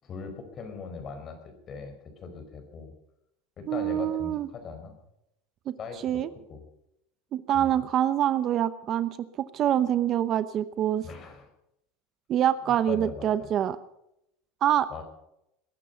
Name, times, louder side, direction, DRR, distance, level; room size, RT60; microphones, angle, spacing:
voice 1, 0.0-2.9 3.6-5.0 5.8-6.2 6.5-6.6 7.5-7.7 11.0-11.5 12.7-13.5 14.9-15.0, left 5 dB, 35° left, 7 dB, 4.9 m, -40 dB
voice 2, 3.7-4.5 5.7-5.8 6.0-6.3 7.3-9.2 9.5-11.1 12.3-13.8 14.6-15.0, right 11 dB, 40° right, 14 dB, 0.8 m, -25 dB
21.0 x 11.5 x 5.8 m, 0.80 s
supercardioid pair, 135°, 0 cm